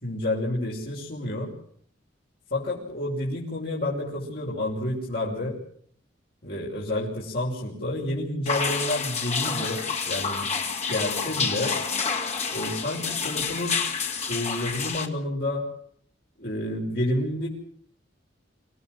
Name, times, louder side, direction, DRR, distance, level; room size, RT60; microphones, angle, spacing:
voice 1, 0.0-1.5 2.5-5.6 6.4-10.5 10.9-11.8 12.5-13.8 14.3-15.7 16.4-17.5, left 1 dB, 55° left, -5 dB, 5.9 m, -29 dB
sound 1, 8.5-15.1, left 5 dB, 35° left, 2.7 m, -28 dB
26.5 x 16.5 x 7.9 m, 0.62 s
head